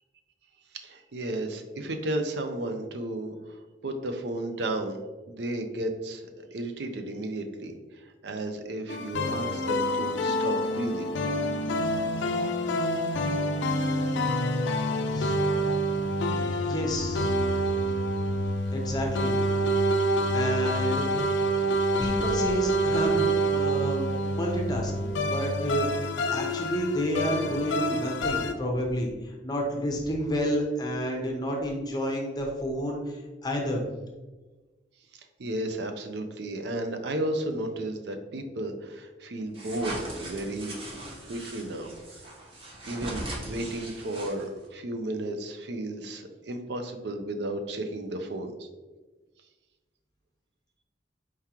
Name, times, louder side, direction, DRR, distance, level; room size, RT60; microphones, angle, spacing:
voice 1, 0.7-5.0 5.3-11.1 35.4-40.7 41.3-42.2 42.8-44.5 44.7-48.5, right 1 dB, 65° right, 5 dB, 0.5 m, -33 dB
sound 1, 8.9-28.5, equal, 75° left, 0.4 m, -27 dB
voice 2, 16.6-17.3 18.7-19.4 20.3-21.1 22.0-24.1 24.3-33.8, equal, 20° left, 0 dB, 0.7 m, -30 dB
sound 2, 39.5-44.7, right 1 dB, 30° right, 0.8 m, -39 dB
4.6 x 3.6 x 2.9 m, 1.2 s
head